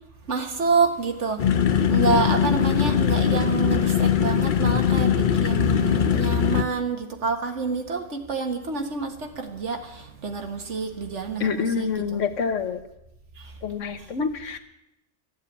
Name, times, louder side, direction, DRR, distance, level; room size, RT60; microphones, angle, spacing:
voice 1, 0.3-1.5 1.9-12.2 13.4-13.5, right 4 dB, 75° right, 5 dB, 1.8 m, -28 dB
sound 1, 1.4-6.6, left 8 dB, 50° left, 0.7 m, -21 dB
voice 2, 11.4-12.8 13.6-14.6, left 6 dB, 85° left, 9 dB, 1.4 m, -27 dB
13.5 x 7.4 x 9.7 m, 0.87 s
omnidirectional pair, 1.2 m